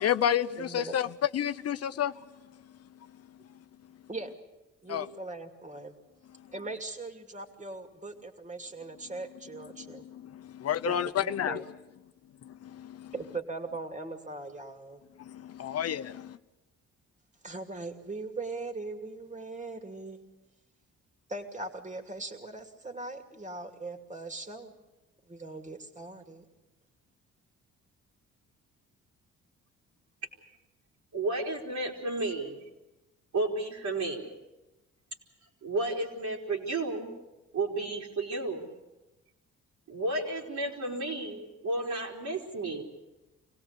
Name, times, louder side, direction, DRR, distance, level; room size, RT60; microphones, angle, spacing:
voice 1, 0.0-2.2 2.6-3.1 4.9-5.1 6.3-6.5 9.6-10.3 10.6-11.7 12.4-13.1 15.2-16.4, left 10 dB, 55° left, 0.7 m, -31 dB
voice 2, 0.6-1.0 4.1-4.3 4.8-5.9 6.5-10.1 10.8-11.6 13.1-15.0 17.4-20.2 21.3-24.7 25.3-26.4, right 3 dB, 25° right, 2.6 m, -40 dB
voice 3, 31.1-32.6 33.3-34.3 35.6-37.1 37.5-38.7 39.9-42.8, right 2 dB, 65° right, 4.2 m, -32 dB
25.0 x 17.5 x 8.2 m
cardioid pair, 90°, 30 cm